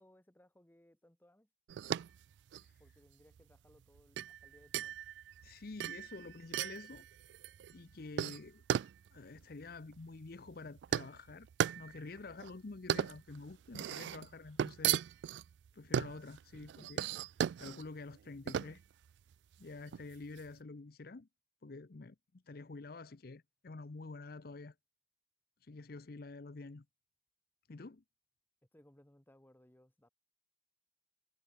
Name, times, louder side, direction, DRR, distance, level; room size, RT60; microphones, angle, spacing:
voice 1, 0.0-1.5 2.8-4.9 28.7-30.1, left 1 dB, 10° left, 1.2 m, -65 dB
sound 1, 1.7-20.5, right 9 dB, 80° right, 0.3 m, -38 dB
voice 2, 5.4-7.1 7.7-8.6 9.1-11.5 11.8-15.0 15.7-17.1 17.6-18.8 19.6-21.3 21.6-24.7 25.6-26.8 27.7-28.0, left 3 dB, 60° left, 0.7 m, -48 dB
head